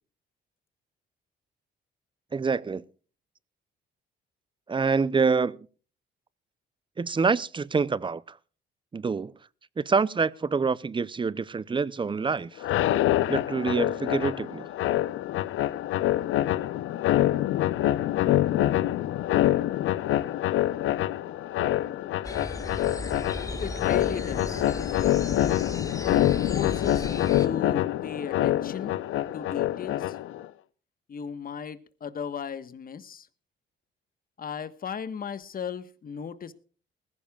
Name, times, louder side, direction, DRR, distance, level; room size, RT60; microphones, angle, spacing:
voice 1, 2.3-2.8 4.7-5.6 7.0-8.4 8.9-9.3 9.8-12.7 13.3-14.7, right 5 dB, 25° right, 0.6 m, -26 dB
sound 1, 12.6-30.4, left 13 dB, 85° left, 0.8 m, -26 dB
sound 2, 22.2-27.5, left 2 dB, 15° left, 2.1 m, -36 dB
voice 2, 23.6-24.7 26.0-28.9 29.3-30.2 31.1-33.3 34.4-36.5, left 7 dB, 45° left, 1.4 m, -36 dB
20.5 x 15.5 x 2.4 m
cardioid pair, 90°, 20 cm